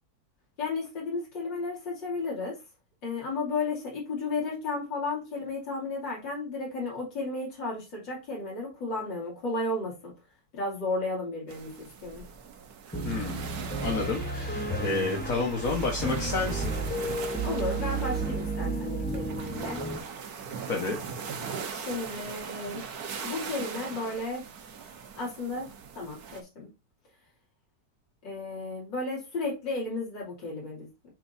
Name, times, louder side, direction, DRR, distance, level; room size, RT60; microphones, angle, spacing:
voice 1, 0.6-2.6 3.0-10.1 10.5-12.2 17.4-19.8 21.7-22.9 23.2-24.4 25.2-25.7 26.0-26.7 28.2-31.1, left 3 dB, 80° left, 3.5 m, -33 dB
sound 1, 11.5-26.4, right 6 dB, 60° right, 1.5 m, -40 dB
Piano, 12.9-20.0, right 2 dB, 10° left, 0.7 m, -32 dB
voice 2, 13.0-13.5 13.8-16.7 20.7-21.0, left 3 dB, 50° left, 1.6 m, -30 dB
9.3 x 4.0 x 2.7 m
omnidirectional pair, 2.0 m